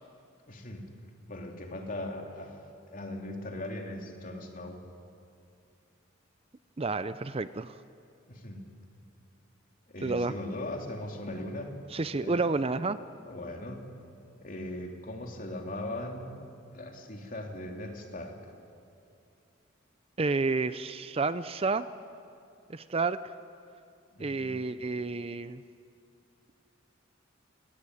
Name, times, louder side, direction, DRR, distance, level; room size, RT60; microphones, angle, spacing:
voice 1, 0.5-0.8 1.3-2.6 2.9-4.8 8.3-8.6 9.9-11.8 12.1-12.4 13.2-13.9 14.3-16.3 16.7-18.5 24.1-24.6, left 1 dB, 40° left, 2 dB, 3.1 m, -39 dB
voice 2, 6.8-7.8 10.0-10.3 11.9-13.0 20.2-21.9 22.7-23.3 24.2-25.6, right 3 dB, 30° right, 13 dB, 0.5 m, -30 dB
27.0 x 19.0 x 9.9 m, 2.5 s
head